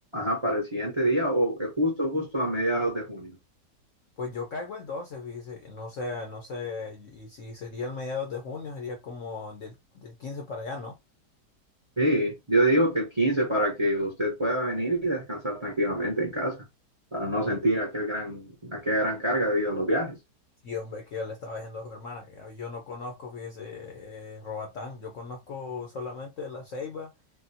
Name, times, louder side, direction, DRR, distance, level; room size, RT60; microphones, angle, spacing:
voice 1, 0.1-3.4 12.0-16.6 17.1-20.2, right 1 dB, 25° right, 0.7 m, -26 dB
voice 2, 4.2-11.0 20.6-27.1, left 4 dB, 60° left, 0.9 m, -37 dB
3.6 x 2.3 x 2.6 m
omnidirectional pair, 1.9 m